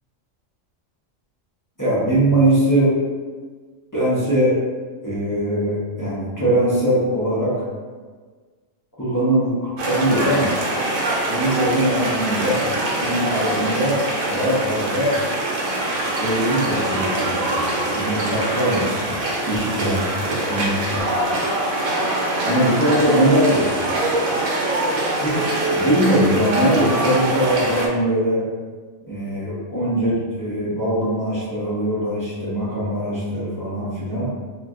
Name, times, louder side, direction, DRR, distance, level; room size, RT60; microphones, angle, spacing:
voice 1, 1.8-2.9 3.9-4.5 5.0-7.5 9.0-10.5 11.3-12.6 13.0-15.2 16.1-21.4 22.4-24.1 25.2-28.4 29.0-34.3, right 1 dB, 20° left, -10 dB, 0.5 m, -21 dB
sound 1, 9.8-27.9, right 1 dB, 85° right, 1.0 m, -23 dB
2.6 x 2.2 x 3.5 m, 1.4 s
omnidirectional pair, 1.4 m